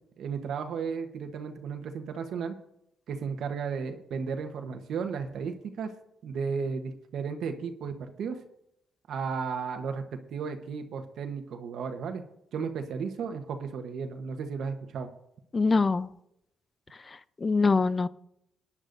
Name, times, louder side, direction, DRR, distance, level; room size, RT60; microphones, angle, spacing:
voice 1, 0.2-2.5 3.1-5.9 6.2-8.4 9.1-12.2 12.5-15.1, right 5 dB, 70° right, 6 dB, 1.1 m, -34 dB
voice 2, 15.5-16.1 17.1-18.1, left 4 dB, 30° left, 16 dB, 0.5 m, -24 dB
19.5 x 9.8 x 2.6 m, 0.78 s
cardioid pair, 90°, 0 cm